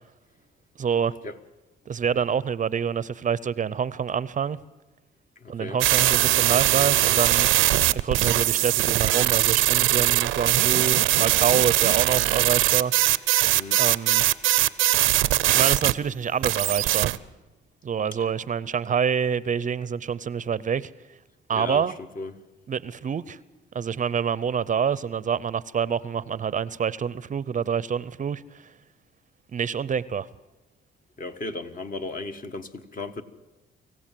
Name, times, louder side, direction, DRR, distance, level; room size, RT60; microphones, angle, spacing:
voice 1, 0.8-1.2 1.9-4.6 5.5-13.3 13.8-14.2 15.5-17.1 17.8-20.9 21.5-21.9 22.7-23.4 23.7-28.7 29.5-30.3, right 7 dB, 40° right, 0.6 m, -27 dB
voice 2, 5.4-5.8 13.5-13.8 21.5-21.8 22.2-22.3 31.2-33.2, left 3 dB, 45° left, 1.4 m, -35 dB
sound 1, 5.8-15.9 16.4-17.2, right 15 dB, 90° right, 0.6 m, -21 dB
25.0 x 15.5 x 7.6 m
cardioid pair, 90°, 20 cm